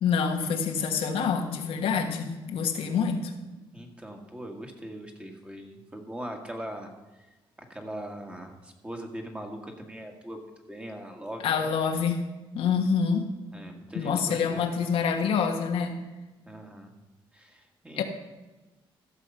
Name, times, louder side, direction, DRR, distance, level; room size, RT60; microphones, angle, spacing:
voice 1, 0.0-3.3 11.4-12.2 12.5-13.3 13.9-16.0 18.0-18.1, left 6 dB, 80° left, 4 dB, 1.4 m, -26 dB
voice 2, 3.7-6.9 7.7-11.7 13.5-14.9 16.5-16.9 17.3-18.0, right 1 dB, 10° right, 3 dB, 1.8 m, -40 dB
14.5 x 6.6 x 5.6 m, 1.1 s
cardioid pair, 105°, 10 cm